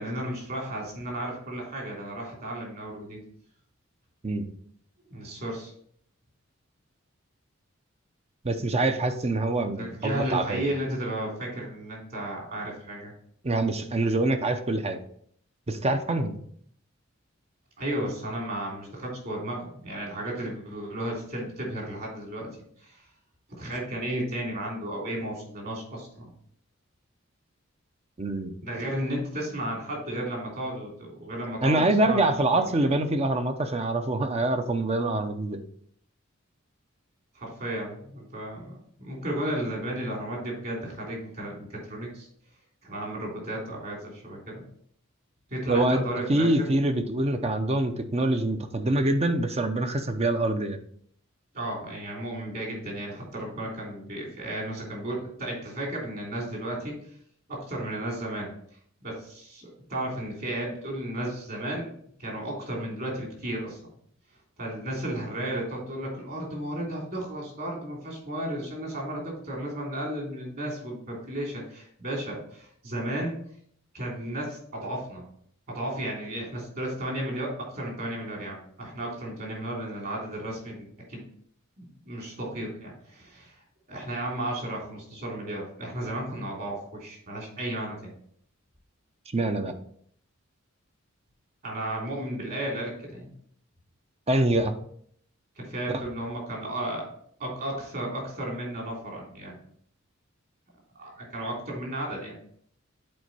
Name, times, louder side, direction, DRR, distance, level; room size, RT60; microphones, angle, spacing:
voice 1, 0.0-3.2 5.1-5.7 9.7-13.1 17.8-22.5 22.8-23.0 23.6-26.3 28.6-32.2 37.3-42.3 42.8-44.6 45.5-46.6 51.5-57.0 57.5-58.5 59.0-61.9 62.2-63.8 64.6-73.3 73.9-75.2 75.7-81.2 81.8-83.5 83.9-88.1 91.6-93.3 95.6-97.0 97.4-99.5 101.0-102.4, right 1 dB, 50° right, -2 dB, 3.3 m, -34 dB
voice 2, 8.4-10.7 13.4-15.0 15.7-16.4 28.2-28.6 31.6-35.6 45.7-46.0 46.3-50.8 89.3-89.7 94.3-94.7, right 2 dB, 30° right, 7 dB, 0.6 m, -25 dB
7.8 x 4.4 x 4.1 m, 0.64 s
head